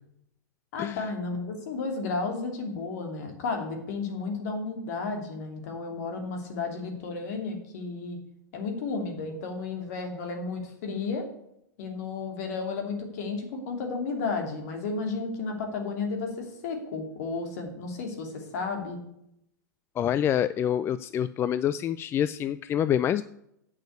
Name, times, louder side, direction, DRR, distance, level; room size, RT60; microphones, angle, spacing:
voice 1, 0.7-8.2 8.5-11.2 11.8-19.0, left 4 dB, 60° left, 4 dB, 2.9 m, -33 dB
voice 2, 20.0-23.2, left 10 dB, 25° left, 15 dB, 0.3 m, -26 dB
8.5 x 6.5 x 8.1 m, 0.77 s
hypercardioid pair, 105°, 10 cm